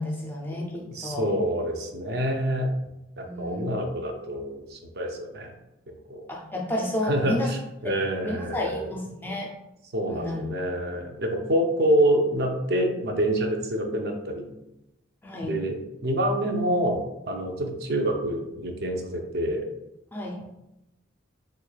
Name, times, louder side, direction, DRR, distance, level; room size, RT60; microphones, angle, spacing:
voice 1, 0.0-1.3 3.2-3.6 6.3-7.5 7.8-8.0 8.2-9.5 10.0-10.4 15.2-15.6 20.1-20.4, left 1 dB, 10° left, -1 dB, 0.4 m, -31 dB
voice 2, 0.9-2.7 3.2-5.5 6.1-6.3 7.0-8.9 9.9-14.5 15.4-19.7, right 1 dB, 55° right, 3 dB, 0.5 m, -27 dB
3.5 x 3.1 x 2.3 m, 0.89 s
head